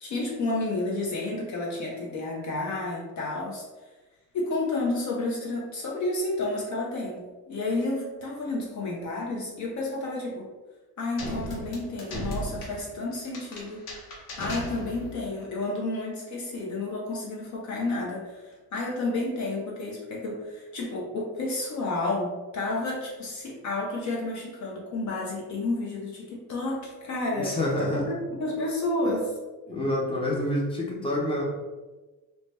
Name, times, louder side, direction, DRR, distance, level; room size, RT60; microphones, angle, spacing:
voice 1, 0.0-3.6 4.3-10.5 11.0-13.9 14.4-28.0 28.3-29.4, left 2 dB, 50° left, -3 dB, 0.6 m, -31 dB
sound 1, 11.2-15.3, equal, 75° left, 0.9 m, -36 dB
voice 2, 27.3-28.0 29.7-31.4, left 1 dB, 15° left, -3 dB, 0.6 m, -27 dB
2.7 x 2.1 x 3.2 m, 1.2 s
cardioid pair, 130°, 37 cm